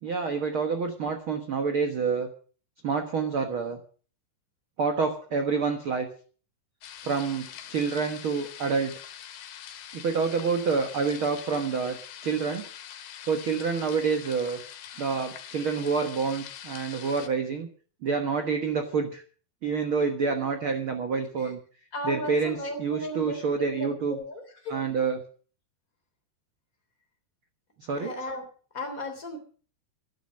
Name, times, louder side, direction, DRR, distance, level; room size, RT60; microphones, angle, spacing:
voice 1, 0.0-2.3 2.8-3.8 4.8-6.1 7.0-9.1 9.9-12.0 12.2-12.7 13.3-14.6 15.0-17.7 18.0-19.2 19.6-21.6 22.0-24.2 24.7-25.2 27.8-28.1, right 5 dB, 90° right, 5 dB, 1.1 m, -28 dB
sound 1, 6.8-17.3, left 10 dB, 85° left, 3.5 m, -44 dB
voice 2, 21.9-24.8 28.0-28.5 28.7-29.4, left 1 dB, 20° left, 4 dB, 3.3 m, -35 dB
12.0 x 11.5 x 6.4 m, 0.42 s
omnidirectional pair, 4.6 m